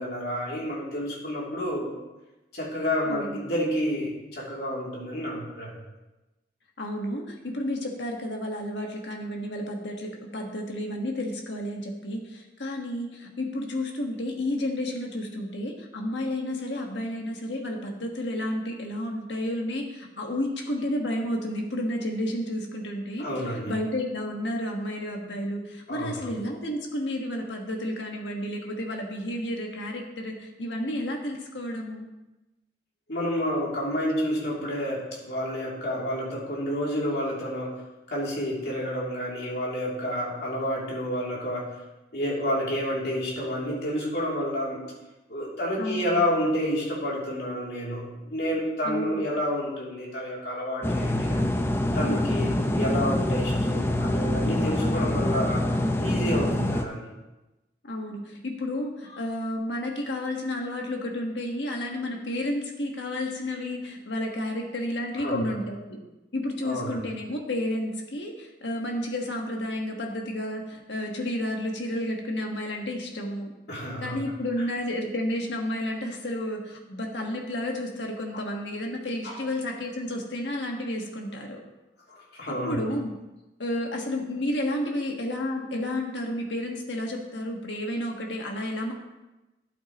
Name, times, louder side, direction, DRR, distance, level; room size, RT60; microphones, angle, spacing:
voice 1, 0.0-1.9 2.5-5.8 23.2-23.7 25.9-26.3 33.1-37.7 38.1-41.7 42.1-44.8 45.3-51.4 51.9-55.7 55.9-57.1 65.2-65.5 66.6-67.0 73.7-74.2 79.2-79.4 82.3-82.8, equal, 60° left, -5 dB, 2.9 m, -29 dB
voice 2, 3.1-3.4 6.8-23.3 23.7-32.1 45.8-46.2 48.8-49.3 52.5-52.9 57.8-66.0 66.3-73.5 74.0-81.6 82.5-83.1 83.6-88.9, left 1 dB, 80° left, 1 dB, 1.5 m, -31 dB
sound 1, 50.8-56.8, left 1 dB, 15° left, 0.5 m, -25 dB
11.5 x 8.4 x 3.0 m, 1.0 s
head